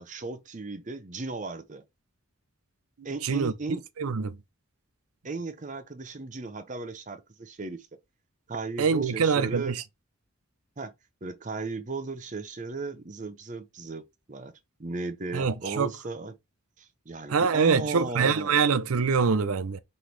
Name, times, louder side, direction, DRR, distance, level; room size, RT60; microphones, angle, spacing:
voice 1, 0.0-1.8 3.0-3.8 5.2-7.9 8.5-9.7 10.8-10.9 11.2-14.5 14.8-16.3 16.8-18.5, right 3 dB, 35° right, 0.7 m, -36 dB
voice 2, 3.2-3.5 4.0-4.4 8.8-9.8 15.3-15.9 17.3-19.8, right 5 dB, 90° right, 0.6 m, -24 dB
5.6 x 2.8 x 3.2 m
head